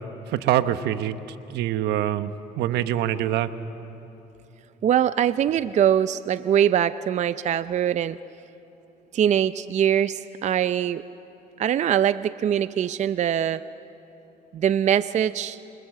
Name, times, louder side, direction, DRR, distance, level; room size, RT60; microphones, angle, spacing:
voice 1, 0.3-1.2 1.5-3.5, right 12 dB, 80° right, 11 dB, 1.0 m, -24 dB
voice 2, 4.8-8.2 9.1-11.0 11.6-13.6 14.5-15.6, right 10 dB, 45° right, 14 dB, 0.5 m, -22 dB
27.0 x 25.5 x 7.6 m, 2.9 s
cardioid pair, 110°, 17 cm